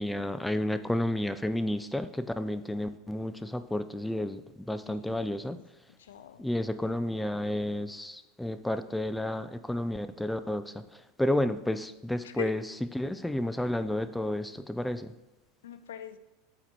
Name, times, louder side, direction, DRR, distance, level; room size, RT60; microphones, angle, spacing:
voice 1, 0.0-5.6 6.4-12.6 12.9-15.1, left 1 dB, 5° left, 10 dB, 0.4 m, -31 dB
voice 2, 4.8-5.6 6.0-6.6 12.2-12.5 15.6-16.2, left 10 dB, 80° left, 11 dB, 0.4 m, -42 dB
8.7 x 2.9 x 4.6 m, 1.0 s
hypercardioid pair, 85°, 0 cm